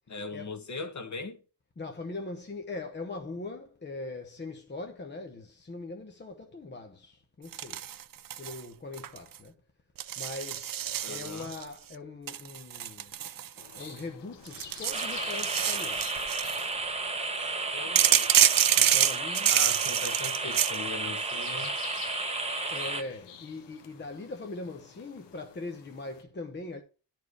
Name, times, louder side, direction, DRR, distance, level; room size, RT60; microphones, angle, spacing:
voice 1, 0.1-1.4 11.0-11.5 17.7-18.3 19.5-21.7, left 3 dB, 40° left, 1.5 m, -39 dB
voice 2, 1.8-7.8 8.4-9.5 10.2-13.1 13.8-16.2 18.8-19.5 22.7-26.8, left 3 dB, 25° left, 0.9 m, -41 dB
sound 1, 7.5-8.6 8.9-9.4 10.0-11.6 12.3-14.0 14.5-16.6 18.0-20.8, right 11 dB, 50° right, 0.6 m, -27 dB
sound 2, 13.6-26.2, left 8 dB, 70° left, 1.1 m, -47 dB
sound 3, 14.9-23.0, right 3 dB, 15° right, 0.8 m, -33 dB
11.0 x 4.6 x 4.7 m
wide cardioid pair, 155°, 44 cm